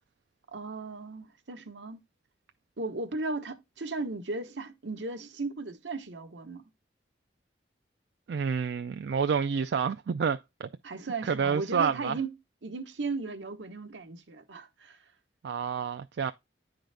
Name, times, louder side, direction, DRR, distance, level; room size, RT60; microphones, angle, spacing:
voice 1, 0.5-2.0 2.8-6.6 10.8-12.3 12.6-15.0, right 3 dB, 85° right, 1.0 m, -36 dB
voice 2, 8.3-10.7 11.2-12.2 15.4-16.3, right 6 dB, 70° right, 0.4 m, -29 dB
10.0 x 3.9 x 3.3 m
head